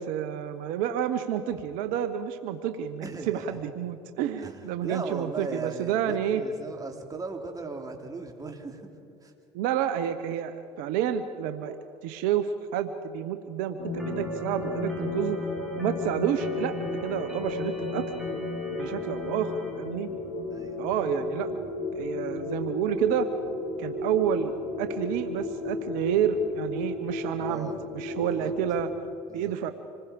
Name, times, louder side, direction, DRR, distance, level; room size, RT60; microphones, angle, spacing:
voice 1, 0.0-6.4 9.5-11.8 12.0-15.4 15.8-18.1 18.8-20.1 20.8-21.5 22.0-23.3 23.8-28.9 29.3-29.7, right 9 dB, 75° right, 10 dB, 0.9 m, -29 dB
voice 2, 3.0-3.6 4.4-8.9 9.2-9.3 20.5-20.9 27.4-27.8 28.2-28.5 29.3-29.5, right 4 dB, 25° right, 3 dB, 3.2 m, -38 dB
sound 1, 13.8-28.9, left 2 dB, 65° left, 3.3 m, -33 dB
Organ, 14.0-19.7, equal, ahead, 5.3 m, -45 dB
27.0 x 20.5 x 5.2 m, 2.8 s
hypercardioid pair, 75°, 14 cm